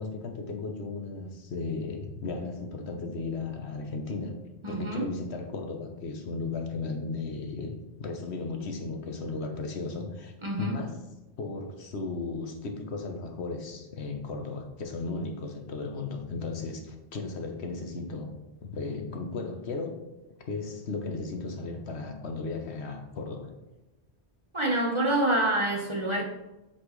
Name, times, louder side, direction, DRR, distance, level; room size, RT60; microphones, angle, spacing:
voice 1, 0.0-4.3 4.7-10.3 10.6-11.0 11.4-18.3 18.6-19.9 20.5-23.5, left 3 dB, 70° left, 4 dB, 1.2 m, -35 dB
voice 2, 4.6-5.1 10.4-10.8 24.5-26.2, right 1 dB, 25° right, -1 dB, 1.2 m, -27 dB
7.9 x 6.0 x 3.2 m, 1.0 s
omnidirectional pair, 1.2 m